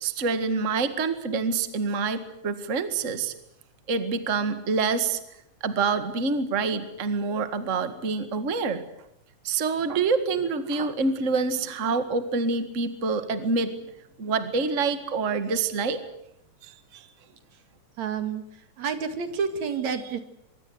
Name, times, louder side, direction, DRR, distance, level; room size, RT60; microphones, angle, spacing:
voice 1, 0.0-3.3 3.9-5.2 5.6-8.8 9.4-13.7 14.2-16.0 16.6-17.1, right 4 dB, 30° right, 10 dB, 1.9 m, -26 dB
voice 2, 18.0-18.4 18.8-20.2, right 6 dB, 70° right, 9 dB, 3.3 m, -29 dB
24.0 x 24.0 x 8.0 m, 0.78 s
omnidirectional pair, 3.4 m